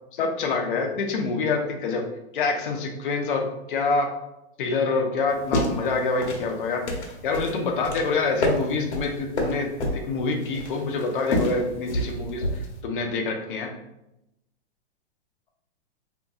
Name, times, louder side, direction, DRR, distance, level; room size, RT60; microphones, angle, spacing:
voice 1, 0.2-2.0 2.3-4.1 4.6-6.8 7.2-12.4 12.8-13.7, left 4 dB, 50° left, 3 dB, 0.6 m, -26 dB
sound 1, 5.3-12.8, left 1 dB, 80° left, 1.0 m, -29 dB
2.9 x 2.7 x 2.4 m, 0.86 s
hypercardioid pair, 155°, 33 cm